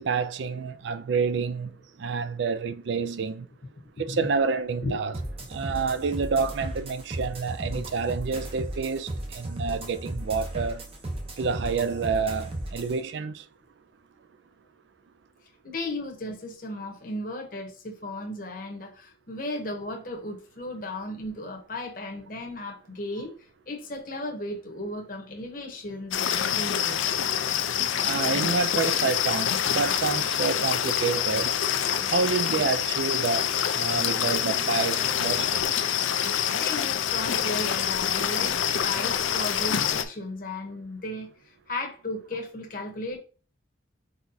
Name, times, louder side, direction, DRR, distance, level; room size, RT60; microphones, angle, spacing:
voice 1, 0.0-3.5 4.0-5.1 5.5-10.8 11.4-13.4 28.0-31.6 32.1-33.5 33.8-35.7, right 5 dB, 65° right, 0.4 m, -28 dB
sound 1, 5.1-12.9, right 1 dB, 30° right, 0.7 m, -35 dB
voice 2, 15.6-27.1 36.5-43.2, left 2 dB, 45° left, 0.9 m, -35 dB
sound 2, 26.1-40.0, left 9 dB, 85° left, 0.5 m, -26 dB
4.6 x 4.1 x 2.7 m
head